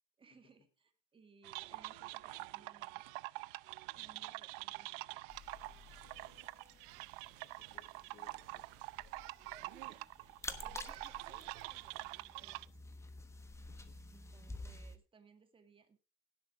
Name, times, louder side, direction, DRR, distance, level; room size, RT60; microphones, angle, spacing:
voice 1, 0.2-3.1 3.9-5.4 9.5-10.3 10.6-12.1 12.4-12.8 14.1-16.0, right 5 dB, 15° right, 8 dB, 1.9 m, -64 dB
sound 1, 1.4-12.7, right 24 dB, 70° right, 0.6 m, -46 dB
sound 2, 1.7-10.4, left 5 dB, 85° left, 7.6 m, -74 dB
sound 3, 5.3-15.0, left 2 dB, 10° left, 1.2 m, -52 dB
voice 2, 7.4-8.9 13.7-14.0 14.4-14.6, left 7 dB, 35° left, 5 dB, 2.7 m, -66 dB
17.0 x 8.0 x 4.5 m, 0.31 s
cardioid pair, 155°, 30 cm